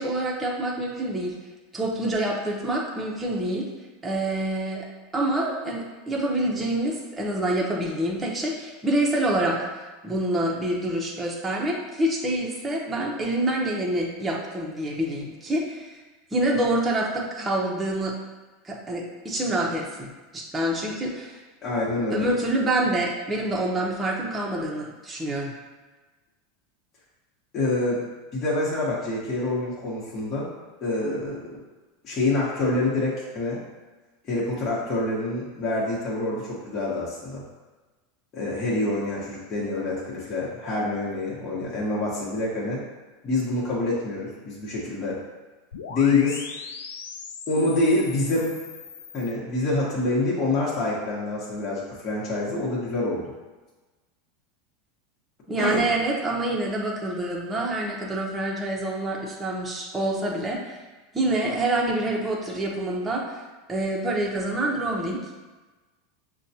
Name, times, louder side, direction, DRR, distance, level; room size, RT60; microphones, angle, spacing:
voice 1, 0.0-1.3 1.7-3.7 4.0-4.9 5.1-9.7 10.0-15.9 16.3-18.1 18.6-21.4 22.1-25.5 55.5-60.8 61.1-63.4 63.7-65.2, right 1 dB, 15° right, -3 dB, 0.8 m, -26 dB
voice 2, 21.6-22.3 27.5-28.0 28.3-30.5 30.8-31.6 32.0-33.6 34.2-37.4 38.3-42.8 43.2-45.2 45.9-46.4 47.5-48.6 49.1-53.2 55.6-55.8, left 2 dB, 35° left, -7 dB, 1.2 m, -26 dB
sound 1, 45.7-49.3, left 5 dB, 85° left, 0.4 m, -39 dB
6.2 x 2.3 x 2.8 m, 1.2 s
hypercardioid pair, 105°, 0 cm